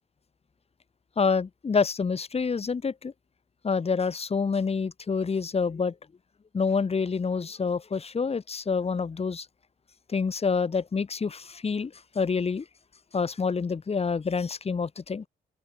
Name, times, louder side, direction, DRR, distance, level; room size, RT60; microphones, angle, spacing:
voice 1, 1.2-3.1 3.6-5.9 6.5-9.5 10.1-12.6 13.1-15.3, left 5 dB, 35° left, 6.7 m, -27 dB
open air
cardioid pair, 115°, 17 cm